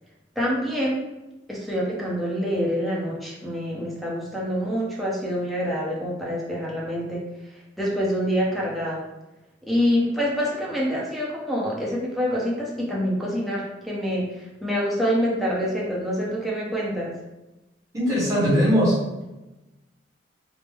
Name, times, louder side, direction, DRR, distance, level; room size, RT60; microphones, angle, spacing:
voice 1, 0.4-1.0 1.5-9.0 9.6-17.1, equal, ahead, -5 dB, 0.7 m, -26 dB
voice 2, 17.9-19.2, equal, 15° right, -8 dB, 1.2 m, -20 dB
3.4 x 2.0 x 3.3 m, 1.0 s
head